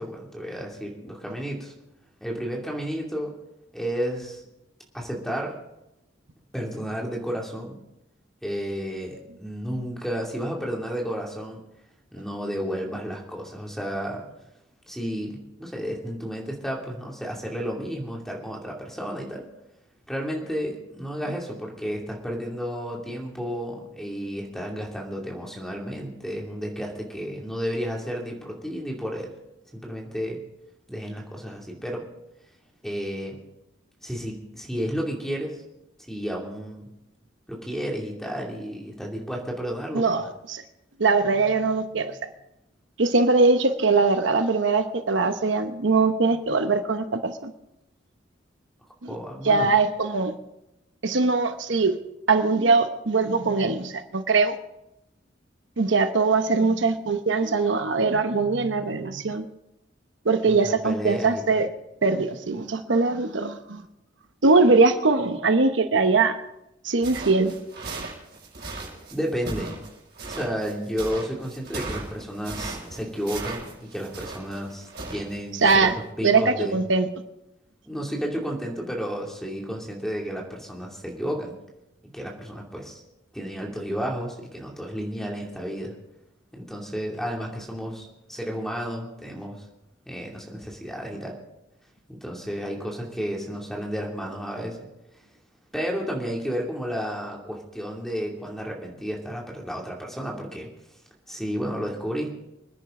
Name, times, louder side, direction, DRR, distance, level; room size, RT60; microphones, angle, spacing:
voice 1, 0.0-1.7 2.2-3.3 3.7-4.4 4.9-5.6 6.5-7.8 8.4-11.6 12.1-14.2 14.9-19.4 20.1-29.3 29.7-30.4 30.9-32.1 32.8-33.4 34.0-35.6 36.1-36.8 37.5-40.1 49.1-49.7 60.4-61.6 69.1-69.8 70.3-75.9 76.2-76.8 77.9-81.6 82.0-83.0 83.3-85.9 86.5-89.6 90.1-91.3 92.1-94.8 95.7-100.7 101.3-102.3, equal, ahead, -1 dB, 2.5 m, -32 dB
voice 2, 39.9-40.6 41.0-42.1 43.0-47.5 49.0-49.1 49.4-50.4 51.0-52.0 52.3-54.5 55.8-59.4 60.2-61.7 62.0-63.8 64.4-66.3 66.8-67.6 75.6-75.9 76.2-77.1, right 3 dB, 75° right, 8 dB, 1.0 m, -21 dB
sound 1, 67.0-75.4 75.7-75.9, right 3 dB, 55° right, 5.9 m, -37 dB
25.5 x 10.5 x 3.8 m, 0.87 s
head